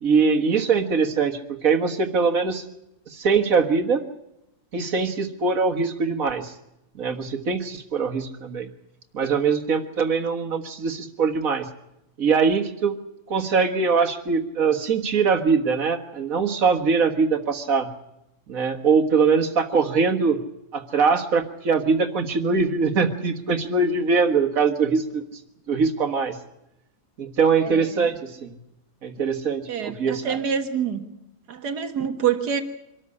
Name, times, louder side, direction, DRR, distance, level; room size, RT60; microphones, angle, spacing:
voice 1, 0.0-2.6 3.1-4.0 4.7-6.5 7.0-8.7 9.1-11.7 12.2-13.0 13.3-17.9 18.5-20.4 20.7-25.2 25.7-26.4 27.2-28.6 29.0-30.4, right 5 dB, 60° right, 5 dB, 2.1 m, -22 dB
voice 2, 27.6-28.1 29.7-31.1 31.5-32.6, right 8 dB, 85° right, 7 dB, 2.1 m, -26 dB
25.0 x 13.5 x 9.8 m, 0.86 s
omnidirectional pair, 1.7 m